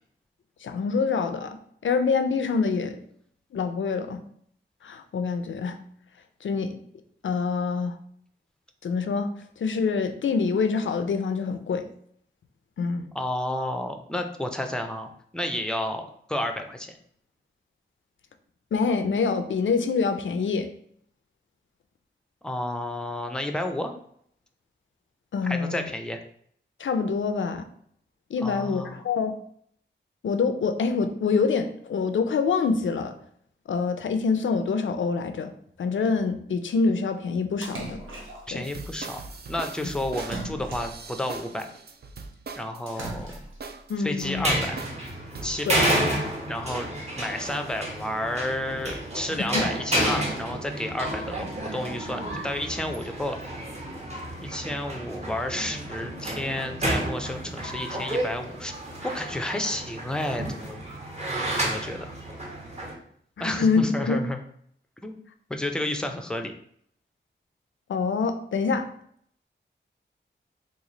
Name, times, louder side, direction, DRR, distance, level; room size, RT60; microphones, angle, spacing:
voice 1, 0.6-1.6 1.8-3.0 3.5-4.2 4.8-5.8 6.4-6.8 7.2-8.0 8.8-9.3 9.6-11.9 12.8-13.1 18.7-20.7 25.3-25.8 26.8-27.6 28.3-29.4 30.2-33.1 33.7-35.5 35.8-38.0 38.5-38.6 43.9-44.4 45.6-45.8 49.3-49.6 63.4-64.2 67.9-68.9, left 5 dB, 75° left, 8 dB, 0.4 m, -25 dB
voice 2, 13.1-17.0 22.4-23.9 25.4-26.2 28.4-29.0 38.5-39.2 39.5-41.7 42.6-43.4 44.0-44.8 45.4-45.9 46.5-46.9 47.2-53.4 54.4-58.7 59.0-60.8 61.6-62.1 63.4-64.4 65.0-65.2 65.5-66.5, left 1 dB, 5° left, 5 dB, 0.4 m, -31 dB
Splash splatter, 37.6-38.6 40.2-41.2 42.9-43.7, right 2 dB, 85° right, 0.8 m, -38 dB
sound 1, 38.6-46.0, right 4 dB, 55° right, 0.4 m, -40 dB
sound 2, 44.2-62.9, right 1 dB, 35° right, 0.8 m, -31 dB
3.1 x 2.4 x 3.8 m, 0.64 s
wide cardioid pair, 115°, 20 cm